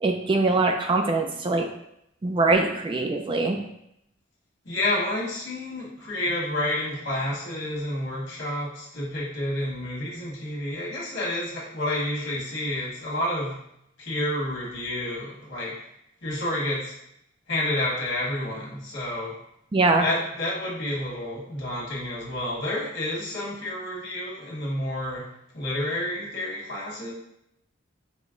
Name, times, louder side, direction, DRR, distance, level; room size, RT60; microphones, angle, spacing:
voice 1, 0.0-1.7 2.2-3.6 19.7-20.0, right 3 dB, 25° right, 4 dB, 0.3 m, -22 dB
voice 2, 4.6-13.6 14.0-15.8 16.2-16.9 17.5-19.3 19.9-25.2 25.5-27.1, left 1 dB, 65° left, -5 dB, 1.5 m, -29 dB
5.0 x 2.1 x 3.7 m, 0.77 s
head